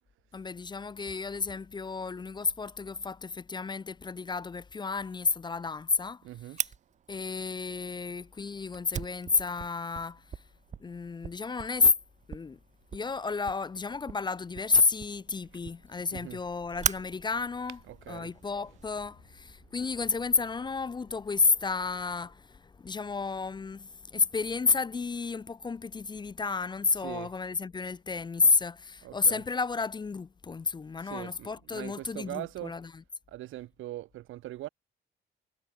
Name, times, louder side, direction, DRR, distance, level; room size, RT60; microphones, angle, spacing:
voice 1, 0.3-6.2 7.1-10.4 10.8-11.9 12.3-12.6 12.9-17.8 18.1-33.0, left 4 dB, 20° left, 0.4 m, -31 dB
voice 2, 6.2-6.6 16.1-16.4 17.9-18.3 27.0-27.3 29.0-29.4 31.0-32.8 33.3-34.7, right 15 dB, 80° right, 0.8 m, -41 dB
Fire, 6.6-19.1, right 8 dB, 35° right, 0.5 m, -41 dB
cardioid pair, 90°, 20 cm